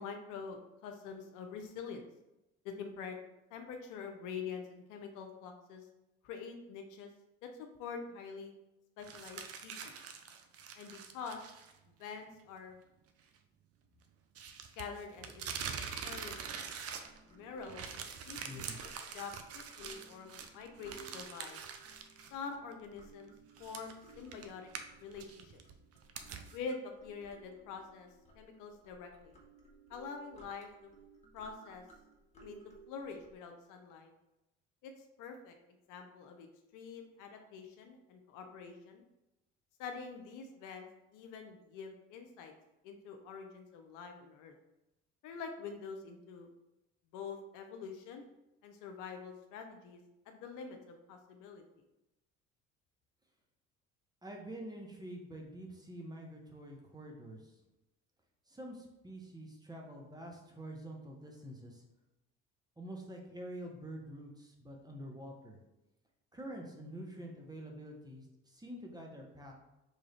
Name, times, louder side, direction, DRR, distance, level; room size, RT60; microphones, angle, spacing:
voice 1, 0.0-2.1 2.6-3.2 3.5-5.9 6.2-7.1 7.4-8.5 9.0-9.9 10.8-11.4 11.9-12.8 14.8-15.4 16.0-16.4 17.3-17.9 18.3-18.6 19.1-21.6 22.3-23.3 23.6-24.7 25.0-25.6 26.5-28.1 28.3-29.3 29.9-30.9 31.3-31.8 32.4-32.6 32.9-34.1 34.8-34.9 35.2-35.5 35.9-39.0 39.8-42.5 42.8-44.6 45.2-46.5 47.1-48.2 48.6-50.0 50.3-51.6, left 5 dB, 65° left, 5 dB, 0.6 m, -46 dB
sound 1, 9.0-11.7 12.1-12.2 14.3-17.3 17.6-22.3 22.7-22.8 23.6-26.6, right 7 dB, 45° right, 0.5 m, -45 dB
sound 2, 17.0-33.4, right 2 dB, 20° left, 1.1 m, -59 dB
voice 2, 18.4-18.8 54.2-57.5 58.5-61.8 62.8-65.6 66.3-69.5, right 1 dB, 10° right, 0 dB, 0.9 m, -47 dB
3.1 x 2.6 x 4.3 m, 0.95 s
hypercardioid pair, 60°, 33 cm